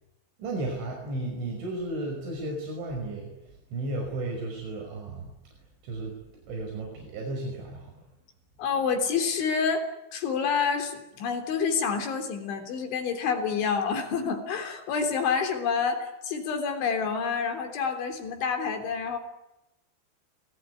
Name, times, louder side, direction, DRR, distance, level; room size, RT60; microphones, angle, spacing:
voice 1, 0.4-3.3 3.7-5.3 5.8-6.2 6.5-8.0, right 2 dB, 75° right, 0 dB, 8.0 m, -34 dB
voice 2, 8.6-19.2, left 6 dB, 75° left, 6 dB, 5.8 m, -28 dB
29.0 x 20.0 x 9.7 m, 0.89 s
omnidirectional pair, 5.4 m